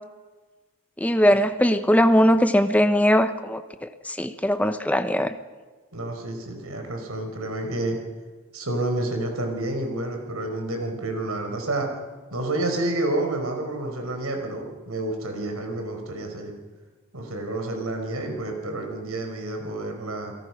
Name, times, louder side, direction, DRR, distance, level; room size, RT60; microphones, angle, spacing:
voice 1, 1.0-5.4, equal, 5° left, 9 dB, 0.8 m, -20 dB
voice 2, 5.9-8.0 8.5-11.9 12.3-16.5 17.1-20.3, right 2 dB, 90° right, 4 dB, 5.1 m, -29 dB
28.5 x 18.5 x 6.1 m, 1.3 s
head